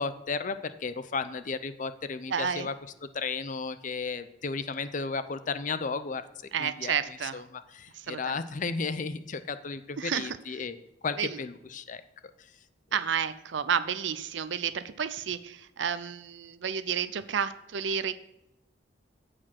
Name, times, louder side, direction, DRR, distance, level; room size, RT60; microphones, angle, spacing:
voice 1, 0.0-2.7 3.1-6.2 6.6-6.9 7.3-10.8 11.0-12.0, left 4 dB, 45° left, 12 dB, 0.6 m, -34 dB
voice 2, 2.3-2.7 6.5-7.4 7.9-8.4 10.0-10.4 11.2-11.4 12.9-18.1, right 7 dB, 75° right, 13 dB, 0.5 m, -31 dB
14.5 x 5.0 x 5.9 m, 0.89 s
head